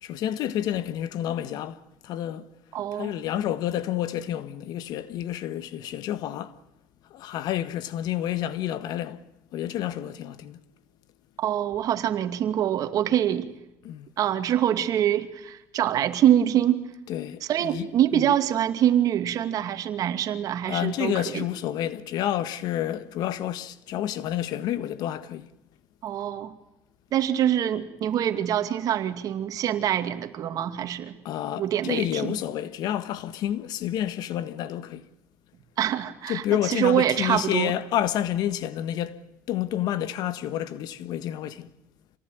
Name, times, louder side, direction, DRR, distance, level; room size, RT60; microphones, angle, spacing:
voice 1, 0.0-2.5 2.9-6.6 7.1-9.2 9.5-10.6 13.8-14.1 17.1-17.9 18.1-18.3 20.7-25.5 31.2-35.1 36.3-39.2 39.5-41.7, left 12 dB, 65° left, 1.5 m, -29 dB
voice 2, 2.7-3.1 11.4-13.5 14.2-16.9 17.5-21.5 26.0-26.5 27.1-31.2 31.6-32.4 35.8-37.7, right 10 dB, 55° right, 2.4 m, -25 dB
27.5 x 18.5 x 9.3 m
supercardioid pair, 100°, 7 cm